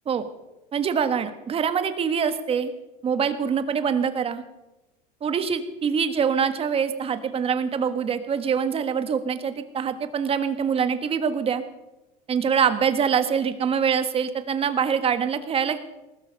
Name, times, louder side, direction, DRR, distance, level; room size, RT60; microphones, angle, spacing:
voice 1, 0.7-2.7 3.0-4.4 5.2-11.6 12.3-15.8, right 7 dB, 30° right, 10 dB, 1.5 m, -24 dB
20.0 x 12.5 x 5.3 m, 1.0 s
supercardioid pair, 120°, 20 cm